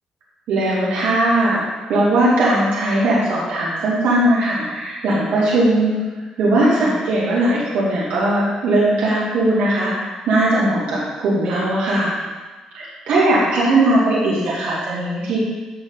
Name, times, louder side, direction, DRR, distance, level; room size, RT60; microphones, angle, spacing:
voice 1, 0.5-1.6 1.9-5.9 6.4-12.1 12.7-15.4, right 1 dB, 60° right, -7 dB, 2.3 m, -18 dB
7.8 x 6.4 x 3.9 m, 1.3 s
figure-of-eight pair, 40°, 3 cm